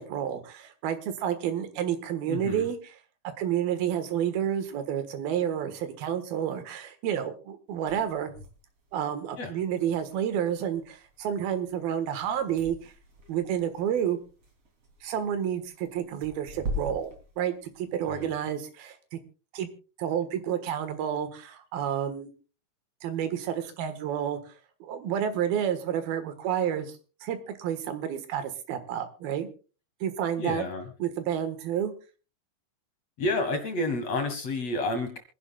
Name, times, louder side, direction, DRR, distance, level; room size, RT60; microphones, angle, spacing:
voice 1, 0.0-2.8 3.4-8.3 8.9-12.9 13.3-14.2 15.0-19.2 19.5-19.7 20.0-22.3 23.0-24.5 24.8-29.5 30.0-30.7 31.0-31.9, right 9 dB, 75° right, 9 dB, 3.2 m, -30 dB
voice 2, 2.3-2.7 9.4-9.5 18.1-18.3 30.4-30.9 33.2-35.2, left 2 dB, 50° left, 6 dB, 2.5 m, -30 dB
sound 1, 7.7-18.2, equal, 40° right, 3.9 m, -42 dB
26.0 x 11.0 x 2.3 m, 0.35 s
omnidirectional pair, 4.4 m